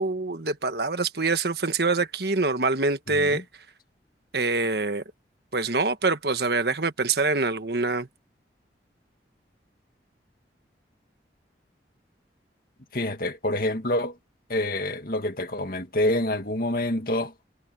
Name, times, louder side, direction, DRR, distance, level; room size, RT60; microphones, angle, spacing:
voice 1, 0.0-3.4 4.3-5.0 5.5-8.1, right 3 dB, 65° right, 1.5 m, -25 dB
voice 2, 3.1-3.4 12.9-14.1 14.5-17.3, left 1 dB, 55° left, 2.2 m, -27 dB
head